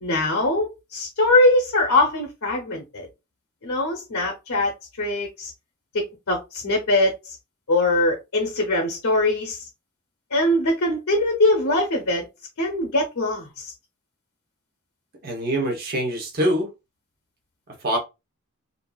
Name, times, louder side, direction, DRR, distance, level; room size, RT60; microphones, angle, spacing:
voice 1, 0.0-3.1 3.6-4.7 5.0-5.5 5.9-7.4 7.7-9.6 10.3-12.3 12.6-13.7, left 2 dB, 70° left, 0.7 m, -22 dB
voice 2, 15.2-16.7 17.8-18.0, equal, 45° right, 0.8 m, -24 dB
2.5 x 2.4 x 2.2 m
head